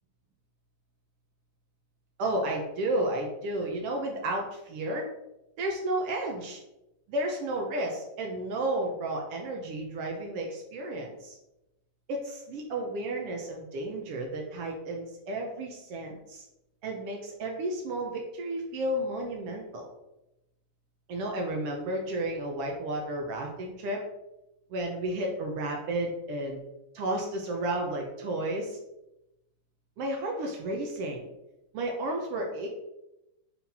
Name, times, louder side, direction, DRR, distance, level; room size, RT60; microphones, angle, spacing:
voice 1, 2.2-5.0 5.6-6.6 7.1-11.4 12.1-16.4 16.8-19.9 21.1-24.0 24.7-26.6 26.9-28.8 30.0-31.3 31.7-32.7, right 1 dB, 80° right, 1 dB, 1.3 m, -32 dB
5.7 x 4.3 x 4.2 m, 0.90 s
omnidirectional pair, 3.9 m